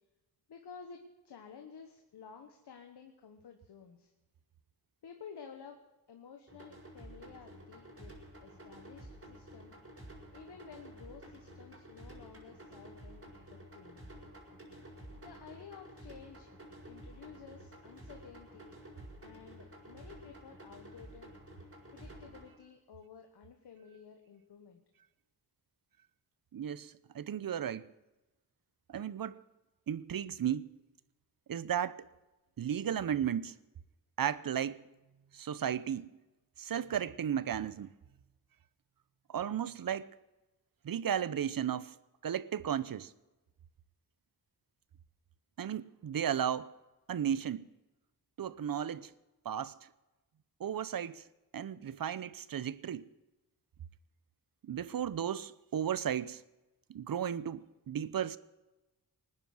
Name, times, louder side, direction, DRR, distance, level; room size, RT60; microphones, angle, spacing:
voice 1, 0.5-4.1 5.0-5.8 6.1-8.1 8.4-9.7 10.3-13.3 13.5-14.1 15.2-16.5 16.9-18.7 19.2-21.3 21.9-24.8, left 6 dB, 80° left, 1.3 m, -53 dB
sound 1, 6.5-22.5, right 1 dB, 35° right, 5.0 m, -52 dB
voice 2, 26.5-27.9 28.9-29.4 29.9-30.8 31.5-32.1 32.6-33.5 34.2-34.8 35.3-36.1 36.6-37.9 39.3-40.1 40.8-41.9 42.2-43.1 45.6-46.7 47.1-47.7 48.4-49.1 49.4-49.7 50.6-51.2 51.5-53.1 54.6-56.4 56.9-58.4, right 9 dB, 60° right, 0.7 m, -34 dB
19.5 x 9.8 x 6.1 m
cardioid pair, 60°, 40 cm